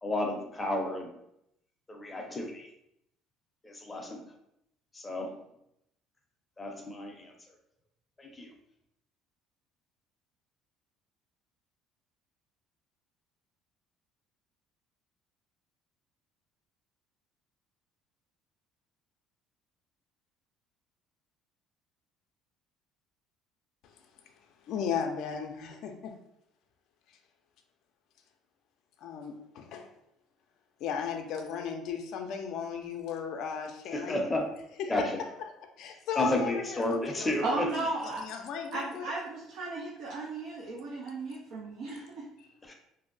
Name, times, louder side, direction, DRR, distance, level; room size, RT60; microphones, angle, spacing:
voice 1, 0.0-1.1 1.9-2.7 3.6-4.3 4.9-5.4 6.6-7.3 8.2-8.5 33.9-34.5 34.9-35.2 36.2-37.7 42.6-42.7, left 1 dB, 15° left, 2 dB, 0.6 m, -32 dB
voice 2, 24.7-26.1 29.0-29.9 30.8-34.2 34.8-35.1 35.8-39.1 42.4-42.5, left 7 dB, 65° left, 4 dB, 0.4 m, -36 dB
voice 3, 37.4-38.2 38.7-42.2, right 3 dB, 65° right, -4 dB, 0.6 m, -35 dB
2.6 x 2.1 x 3.9 m, 0.79 s
cardioid pair, 105°, 0 cm